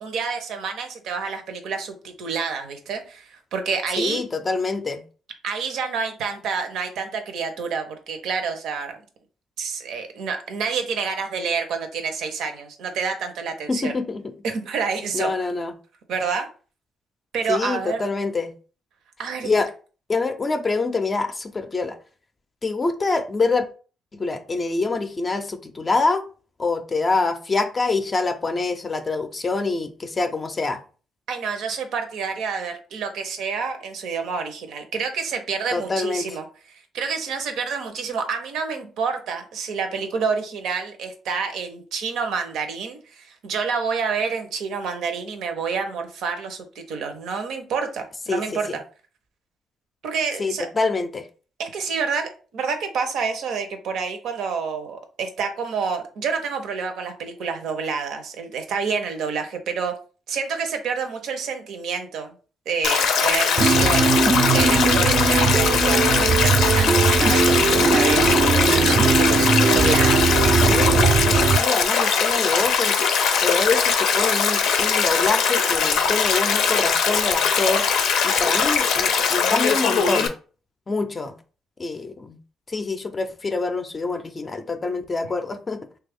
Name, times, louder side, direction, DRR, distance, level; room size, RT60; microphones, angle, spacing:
voice 1, 0.0-4.2 5.4-9.0 9.6-14.0 14.4-15.3 16.1-16.5 17.3-18.1 19.2-19.5 31.3-36.4 36.7-48.7 50.0-50.7 51.6-59.9 60.3-62.3 62.7-64.1 64.5-70.2, right 5 dB, 80° right, 6 dB, 0.6 m, -28 dB
voice 2, 4.0-5.0 13.7-14.2 15.1-15.7 17.5-18.5 19.4-19.7 20.1-22.0 22.6-23.7 24.1-26.2 26.6-30.8 35.7-36.3 48.3-48.4 50.4-51.2 70.6-73.0 73.4-77.9 78.2-80.3 80.9-81.4 81.8-82.4 82.7-85.8, left 3 dB, 30° left, 7 dB, 0.4 m, -25 dB
Stream, 62.8-80.3, left 6 dB, 85° left, 0.5 m, -21 dB
sound 1, 63.6-71.6, right 5 dB, 40° right, 0.3 m, -19 dB
3.1 x 2.3 x 3.4 m, 0.38 s
cardioid pair, 90°, 0 cm